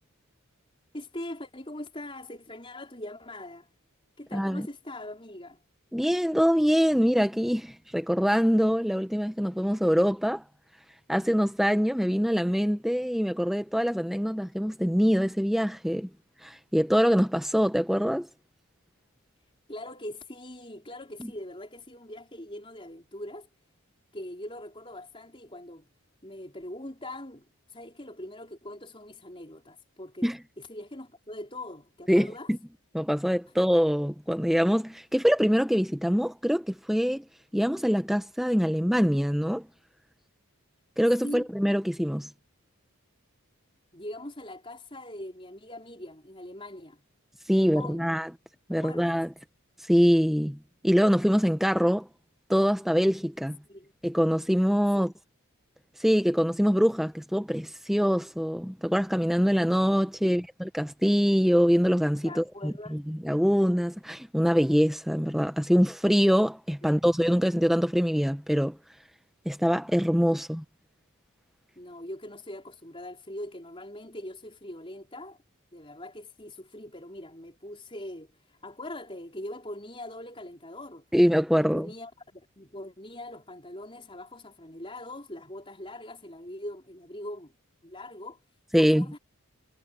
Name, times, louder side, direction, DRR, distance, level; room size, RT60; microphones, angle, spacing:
voice 1, 0.9-3.7 4.2-5.6 19.7-23.5 24.1-25.9 26.2-30.3 30.6-32.5 41.2-41.4 43.9-47.0 47.6-48.2 48.7-49.2 53.7-53.9 54.9-55.1 60.2-60.4 62.2-63.0 66.8-66.9 71.7-75.4 75.7-81.0 81.5-87.5 87.8-88.4 88.7-89.2, left 1 dB, 25° left, 4.8 m, -42 dB
voice 2, 4.3-4.7 5.9-10.4 11.1-16.1 16.4-18.3 30.2-30.4 32.1-32.6 32.9-37.3 37.5-39.7 41.0-42.3 47.5-48.3 48.7-49.3 49.9-52.1 52.5-53.6 54.0-55.1 56.0-68.8 69.4-70.6 81.1-81.9 88.7-89.1, equal, ahead, 1.2 m, -24 dB
head